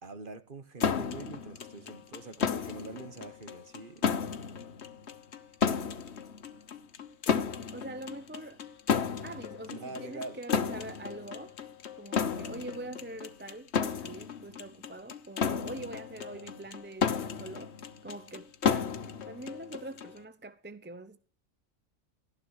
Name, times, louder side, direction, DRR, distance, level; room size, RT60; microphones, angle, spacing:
voice 1, 0.0-4.1 9.7-10.4 16.3-16.7, right 3 dB, 40° right, 1.5 m, -44 dB
sound 1, 0.8-20.2, left 6 dB, 55° left, 1.3 m, -33 dB
voice 2, 7.7-8.6 9.2-11.5 11.9-17.7 18.0-21.2, right 2 dB, 10° right, 0.7 m, -44 dB
15.0 x 13.0 x 6.5 m
omnidirectional pair, 1.4 m